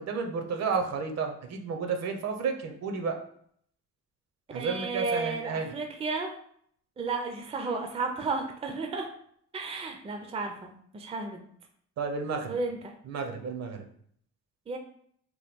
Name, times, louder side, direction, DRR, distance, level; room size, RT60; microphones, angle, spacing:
voice 1, 0.0-3.1 4.5-5.7 12.0-12.6 13.1-13.8, right 5 dB, 60° right, 4 dB, 0.7 m, -32 dB
voice 2, 4.5-6.3 7.0-9.1 9.5-11.4 12.5-12.9 14.7-14.8, right 3 dB, 20° right, 4 dB, 0.4 m, -33 dB
3.0 x 2.2 x 3.5 m, 0.63 s
cardioid pair, 90°, 30 cm